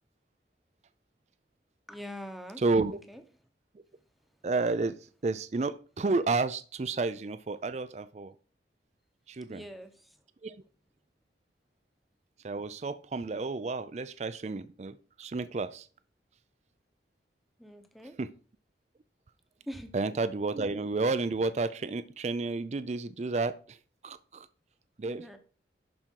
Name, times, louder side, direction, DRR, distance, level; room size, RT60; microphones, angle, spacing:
voice 1, 1.9-2.6 3.1-3.2 9.5-10.2 17.6-18.2 19.7-19.9 25.0-25.4, equal, ahead, 1.0 m, -43 dB
voice 2, 2.6-3.0 4.4-8.3 9.3-9.6 10.4-10.6 12.4-15.9 18.2-18.3 19.9-23.8 24.0-24.5 25.0-25.2, right 3 dB, 40° right, 0.4 m, -31 dB
11.5 x 5.1 x 4.6 m
head